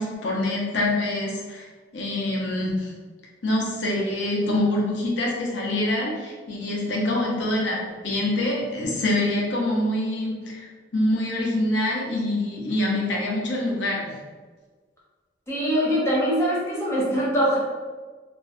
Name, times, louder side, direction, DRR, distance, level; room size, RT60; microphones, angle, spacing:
voice 1, 0.0-1.7 1.9-2.9 3.4-10.7 10.9-14.2, left 1 dB, 70° left, -2 dB, 0.6 m, -25 dB
voice 2, 15.5-17.6, equal, 15° left, -7 dB, 0.7 m, -23 dB
2.5 x 2.1 x 2.4 m, 1.4 s
head